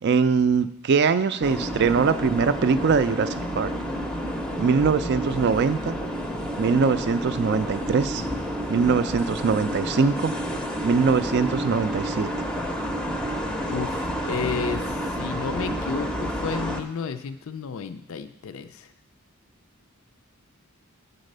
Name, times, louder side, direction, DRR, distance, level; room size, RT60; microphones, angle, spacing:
voice 1, 0.0-3.7 4.6-6.0 6.6-8.3 8.7-10.3 10.8-12.3, right 5 dB, 50° right, 13 dB, 0.4 m, -22 dB
sound 1, 1.4-16.8, equal, 5° left, 0.5 m, -30 dB
voice 2, 13.6-18.9, left 5 dB, 65° left, 10 dB, 0.4 m, -32 dB
8.9 x 4.1 x 6.6 m, 0.83 s
head